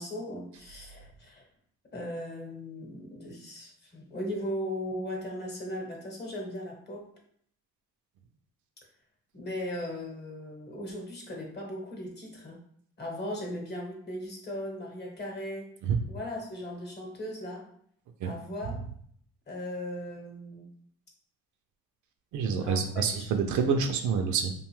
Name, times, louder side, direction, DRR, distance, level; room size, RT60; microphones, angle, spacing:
voice 1, 0.0-1.4 1.9-7.1 9.3-12.6 13.0-15.7 16.1-17.7 18.2-18.8 19.5-20.7 22.6-23.3, left 1 dB, 35° left, -1 dB, 1.0 m, -38 dB
voice 2, 22.3-24.5, right 6 dB, 75° right, 6 dB, 0.5 m, -27 dB
2.6 x 2.3 x 3.0 m, 0.64 s
cardioid pair, 90°, 30 cm